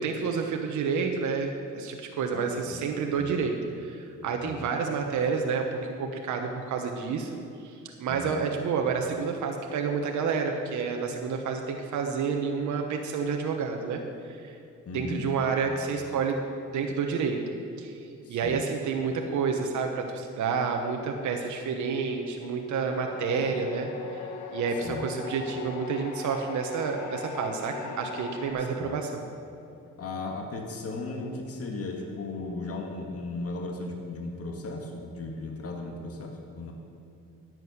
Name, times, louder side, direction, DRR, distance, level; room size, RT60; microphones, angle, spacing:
voice 1, 0.0-14.6 14.9-16.4 16.7-17.4 17.8-29.2, right 5 dB, 75° right, 3 dB, 1.2 m, -29 dB
voice 2, 2.3-2.8 3.2-3.4 4.4-4.7 8.1-8.5 14.9-15.3 18.2-18.6 24.8-25.1 28.8-28.9 30.0-36.7, left 3 dB, 50° left, 2 dB, 1.8 m, -36 dB
sound 1, 22.9-28.5, left 4 dB, 90° left, 1.4 m, -38 dB
11.0 x 7.8 x 8.0 m, 2.6 s
cardioid pair, 90°, 30 cm